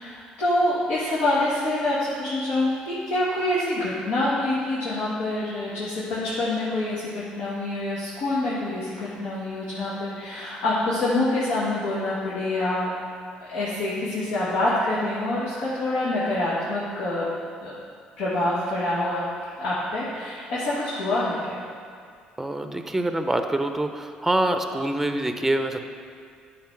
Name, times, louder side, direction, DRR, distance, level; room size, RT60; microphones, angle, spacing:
voice 1, 0.0-12.9 13.4-17.3 17.6-17.7 18.2-19.2 19.6-21.6, left 1 dB, 75° left, -8 dB, 1.8 m, -26 dB
voice 2, 22.4-25.9, right 1 dB, 10° right, 7 dB, 0.6 m, -25 dB
9.5 x 4.1 x 5.9 m, 2.2 s
supercardioid pair, 80°, 3 cm